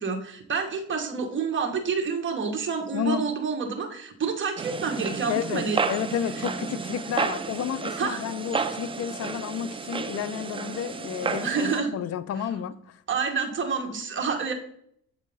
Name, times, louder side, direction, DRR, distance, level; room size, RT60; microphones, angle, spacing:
voice 1, 0.0-5.8 8.0-8.2 11.4-11.9 13.1-14.5, right 5 dB, 40° right, 3 dB, 1.1 m, -28 dB
voice 2, 2.9-3.2 5.3-13.0, left 9 dB, 55° left, 13 dB, 0.5 m, -31 dB
sound 1, 4.6-11.8, right 5 dB, 20° right, 0.3 m, -32 dB
7.5 x 2.7 x 5.4 m, 0.69 s
cardioid pair, 90°, 30 cm